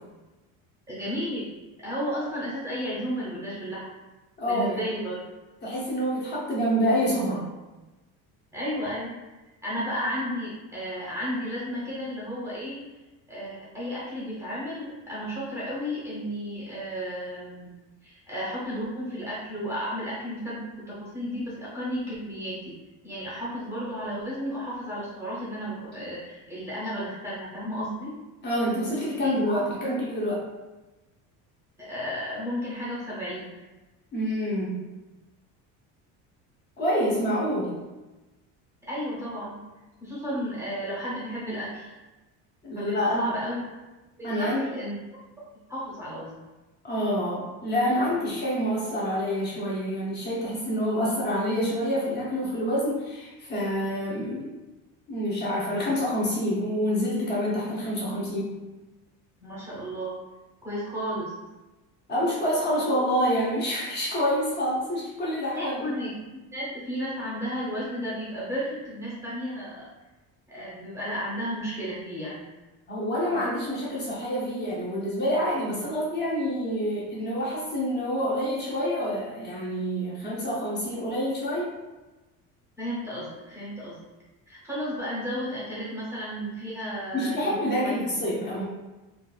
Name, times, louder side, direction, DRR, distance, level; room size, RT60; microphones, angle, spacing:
voice 1, 0.9-1.5 1.8-3.9 4.5-5.2 8.5-9.1 9.6-12.8 13.3-17.8 18.0-22.7 23.0-28.1 29.2-30.0 31.8-33.6 38.9-39.6 40.0-41.9 42.8-43.6 44.2-45.0 45.4-46.4 59.4-60.2 60.6-61.3 65.5-69.8 70.5-72.5 73.3-73.4 82.8-84.0 84.5-87.9, equal, 10° right, -9 dB, 0.7 m, -33 dB
voice 2, 4.4-4.8 5.6-7.4 28.4-30.4 34.1-34.8 36.8-37.7 40.3-40.4 42.6-43.3 44.2-44.7 46.8-54.6 55.1-58.5 62.1-65.9 72.9-81.7 87.1-88.6, equal, 30° left, -6 dB, 0.7 m, -27 dB
3.7 x 2.4 x 2.3 m, 1.1 s
cardioid pair, 180°, 35 cm